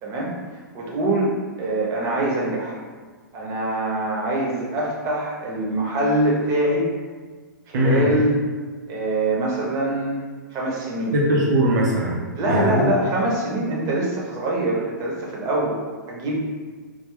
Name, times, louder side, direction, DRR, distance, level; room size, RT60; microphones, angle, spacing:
voice 1, 0.0-2.8 3.3-6.8 7.7-8.4 8.9-10.2 10.5-11.1 12.4-15.8 16.1-16.4, right 1 dB, 30° right, -3 dB, 0.9 m, -24 dB
voice 2, 7.7-8.1 11.1-12.2 12.5-12.8, equal, 60° right, -3 dB, 0.8 m, -20 dB
3.2 x 2.2 x 3.7 m, 1.5 s
hypercardioid pair, 125°, 11 cm